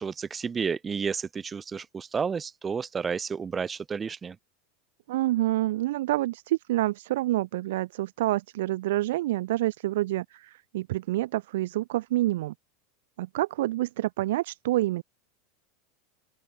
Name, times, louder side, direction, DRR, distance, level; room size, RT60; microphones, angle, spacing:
voice 1, 0.0-4.4, right 6 dB, 25° right, 0.8 m, -31 dB
voice 2, 5.1-12.5 13.2-15.0, right 16 dB, 75° right, 0.6 m, -27 dB
open air
hypercardioid pair, 95°, 0 cm